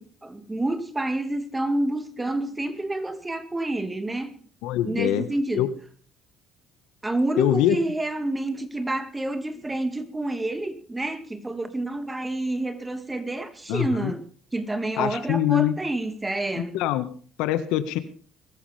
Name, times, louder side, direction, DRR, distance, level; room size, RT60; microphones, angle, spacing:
voice 1, 0.0-4.4 4.8-5.7 7.0-14.3 14.5-16.8, right 2 dB, 15° right, 2.2 m, -28 dB
voice 2, 4.6-5.3 5.5-5.7 7.4-7.8 13.7-14.1 15.0-15.8 16.7-17.0 17.4-18.0, left 13 dB, 85° left, 1.6 m, -23 dB
22.0 x 13.5 x 3.5 m
cardioid pair, 95°, 0 cm